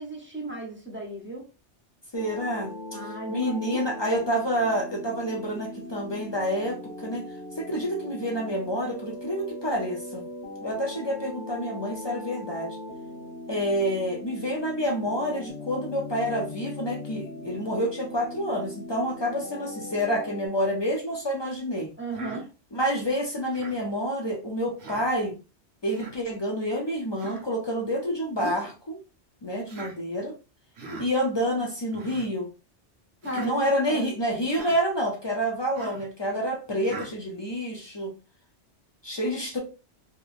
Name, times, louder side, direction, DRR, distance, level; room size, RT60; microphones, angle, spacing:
voice 1, 0.0-1.5 2.9-3.8 22.0-22.5 33.2-34.1, right 2 dB, 15° right, -1 dB, 0.6 m, -35 dB
sound 1, 2.1-20.5, left 1 dB, 90° left, 1.0 m, -40 dB
voice 2, 2.1-2.7 3.3-7.3 7.6-10.3 10.6-12.8 13.5-21.9 22.7-25.3 25.8-29.0 29.4-30.3 31.0-32.5 33.4-38.1 39.0-39.6, equal, 45° left, 0 dB, 0.3 m, -28 dB
Human voice, 22.1-22.4 23.5-23.8 24.8-25.1 25.9-26.1 27.2-27.4 28.4-28.7 29.7-30.0 30.8-31.1 31.9-32.3 33.2-33.5 34.5-34.8 35.7-36.1 36.9-37.1, right 3 dB, 65° right, 1.0 m, -40 dB
2.8 x 2.5 x 2.4 m, 0.33 s
omnidirectional pair, 1.2 m